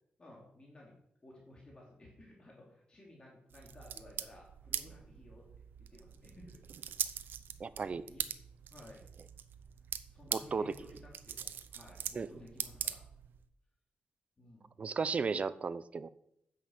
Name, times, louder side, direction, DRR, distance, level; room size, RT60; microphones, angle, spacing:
voice 1, 0.2-1.0 1.2-5.5 5.9-6.6 7.1-7.3 7.8-8.2 8.7-9.1 10.1-13.1 14.4-14.7, left 1 dB, 30° left, -2 dB, 2.9 m, -56 dB
sound 1, 3.5-13.4, right 8 dB, 85° right, 0.7 m, -42 dB
voice 2, 7.6-8.0 10.3-10.7 12.1-12.3 14.8-16.1, right 5 dB, 40° right, 15 dB, 0.5 m, -34 dB
9.5 x 7.6 x 6.5 m, 0.73 s
wide cardioid pair, 130°, 3 cm